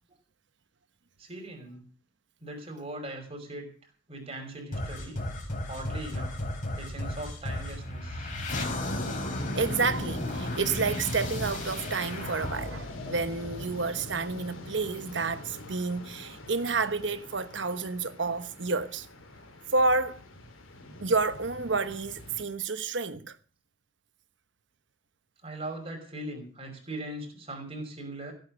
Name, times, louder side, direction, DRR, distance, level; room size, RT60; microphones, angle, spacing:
voice 1, 1.2-1.8 2.4-3.7 4.1-5.2 5.7-6.4 6.8-8.3 25.4-28.3, right 1 dB, 30° right, 5.6 m, -40 dB
sound 1, 4.7-14.0, left 1 dB, 40° left, 4.2 m, -34 dB
voice 2, 9.5-19.1 19.7-20.2 21.0-23.4, right 4 dB, 65° right, 1.1 m, -30 dB
sound 2, 10.7-22.4, left 2 dB, 85° left, 3.5 m, -44 dB
16.5 x 9.4 x 6.5 m
head